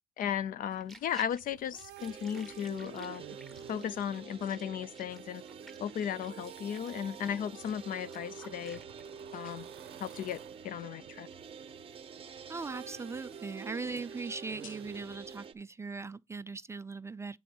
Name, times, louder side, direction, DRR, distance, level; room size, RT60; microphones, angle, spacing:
voice 1, 0.2-3.2 3.7-5.4 5.8-8.8 9.3-9.7 10.0-10.4 10.6-11.3, left 9 dB, 55° left, 0.5 m, -35 dB
sound 1, 0.7-9.0 9.4-9.5, right 1 dB, ahead, 1.4 m, -55 dB
sound 2, 1.4-15.5, right 14 dB, 75° right, 0.6 m, -53 dB
sound 3, 2.0-15.5, right 6 dB, 35° right, 0.8 m, -48 dB
voice 2, 12.5-17.4, right 4 dB, 15° right, 0.3 m, -39 dB
8.4 x 3.8 x 5.3 m
cardioid pair, 110°, 17 cm